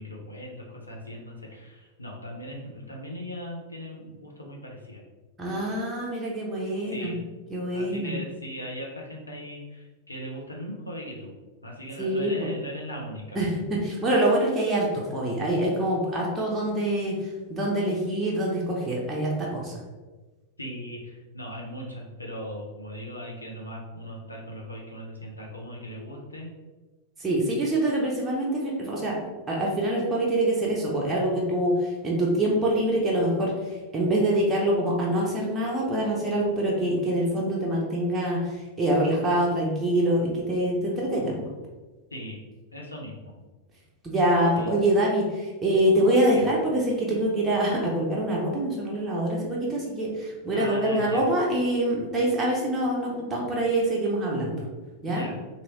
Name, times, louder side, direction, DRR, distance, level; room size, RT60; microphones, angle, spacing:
voice 1, 0.0-5.0 6.9-7.2 7.7-11.3 11.6-13.4 20.6-26.5 42.1-42.4 42.7-43.3 44.5-44.7 46.3-46.5 50.5-51.2 55.0-55.3, equal, 80° left, -1 dB, 0.6 m, -38 dB
voice 2, 5.4-7.1 7.5-8.1 12.0-12.3 13.3-19.8 27.2-29.2 29.5-38.4 38.8-41.4 44.0-54.6 55.0-55.3, right 1 dB, 15° right, -4 dB, 0.7 m, -25 dB
2.9 x 2.6 x 3.0 m, 1.2 s
figure-of-eight pair, 90°, 0 cm